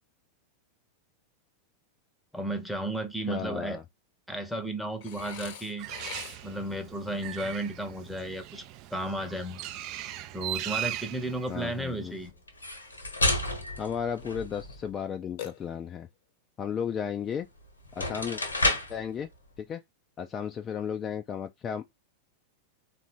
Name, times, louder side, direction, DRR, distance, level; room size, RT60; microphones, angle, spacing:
voice 1, 2.3-3.8 4.3-5.9 6.4-8.7 8.9-9.7 10.3-12.3, right 1 dB, ahead, 0.8 m, -33 dB
voice 2, 3.3-3.8 11.5-12.2 13.8-16.1 16.6-17.5 18.0-18.4 18.9-19.3 19.6-19.8 20.2-21.9, left 7 dB, 25° left, 0.4 m, -34 dB
Burping eructation, 5.0-6.7 15.4-16.2, left 9 dB, 50° left, 0.7 m, -43 dB
Bird, 5.8-12.3, right 13 dB, 40° right, 0.4 m, -39 dB
sound 1, 12.5-14.9 17.3-17.4 17.8-19.0, left 2 dB, 80° left, 1.0 m, -30 dB
3.9 x 2.5 x 3.6 m
figure-of-eight pair, 90°, 0 cm